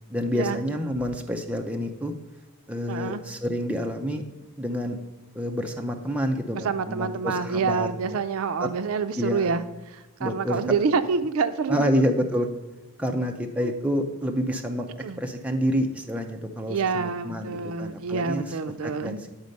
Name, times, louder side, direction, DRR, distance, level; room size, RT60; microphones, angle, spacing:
voice 1, 0.1-2.1 2.7-4.2 4.6-5.0 5.3-7.9 8.6-8.7 9.2-9.5 10.2-10.6 11.7-12.5 13.0-18.6 18.8-19.3, equal, 5° right, 3 dB, 0.5 m, -28 dB
voice 2, 2.9-3.2 6.5-12.0 13.6-13.7 15.0-15.2 16.7-19.2, right 5 dB, 75° right, 11 dB, 0.4 m, -27 dB
9.5 x 4.3 x 5.3 m, 1.1 s
head